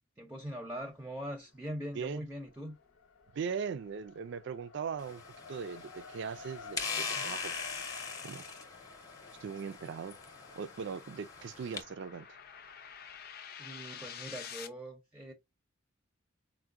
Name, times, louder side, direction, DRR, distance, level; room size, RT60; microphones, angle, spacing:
voice 1, 0.0-2.8 13.6-15.3, equal, 10° right, 0.5 m, -42 dB
Race car auto racing, 0.8-1.5 1.9-13.2, left 4 dB, 85° left, 0.8 m, -54 dB
voice 2, 3.3-5.2 5.5-7.5 8.2-8.4 9.4-10.2 10.6-12.3, right 6 dB, 60° right, 0.3 m, -39 dB
sound 1, 5.0-11.8, left 5 dB, 20° left, 0.8 m, -41 dB
sound 2, 7.8-14.7, left 8 dB, 50° left, 0.6 m, -50 dB
4.5 x 2.1 x 2.4 m
head